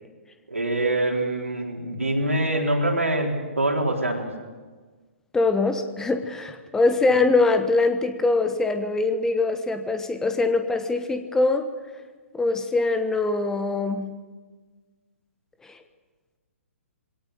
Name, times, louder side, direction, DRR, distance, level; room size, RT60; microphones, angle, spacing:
voice 1, 0.5-4.3 7.1-7.2, right 1 dB, 75° right, 1 dB, 4.1 m, -24 dB
voice 2, 5.3-11.7 12.3-14.1 15.6-15.8, left 3 dB, 5° left, 9 dB, 1.0 m, -23 dB
22.5 x 18.0 x 8.0 m, 1.4 s
figure-of-eight pair, 125°, 7 cm